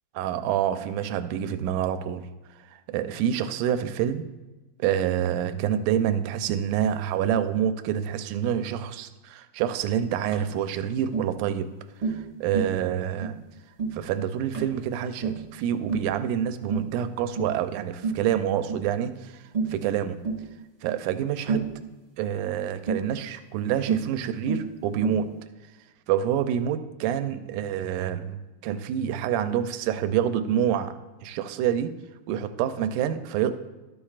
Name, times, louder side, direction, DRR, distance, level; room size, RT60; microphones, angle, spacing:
voice 1, 0.1-2.3 2.7-4.3 4.8-11.7 12.0-13.4 13.9-19.4 19.7-20.2 20.8-21.7 22.2-25.3 26.1-30.9 31.2-31.9 32.3-33.5, right 9 dB, 85° right, 10 dB, 2.0 m, -27 dB
Tap, 10.3-10.5 11.1-11.3 12.0-12.3 12.5-12.8 13.2-13.4 13.8-14.0 14.5-14.8 15.2-15.5 15.9-16.1 16.7-16.9 17.4-17.6 18.0-18.3 18.7-18.9 19.5-19.8 20.2-20.4 21.5-21.8 22.9-23.1 23.9-24.1 24.5-24.7 25.0-25.3, right 4 dB, 25° right, 1.5 m, -29 dB
12.5 x 8.6 x 2.4 m, 1.1 s
omnidirectional pair, 3.5 m